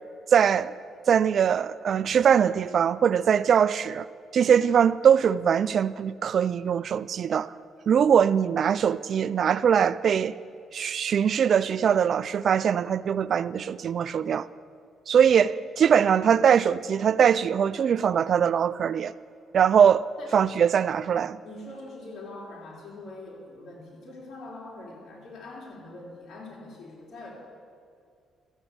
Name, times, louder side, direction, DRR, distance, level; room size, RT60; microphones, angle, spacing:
voice 1, 0.3-0.7 1.1-4.1 4.3-7.5 7.9-10.4 10.7-14.5 15.1-19.1 19.5-20.0 20.3-21.4, right 8 dB, 55° right, 0.4 m, -22 dB
voice 2, 21.4-27.3, left 2 dB, 60° left, 4.1 m, -43 dB
13.5 x 8.1 x 8.6 m
cardioid pair, 90°, 0 cm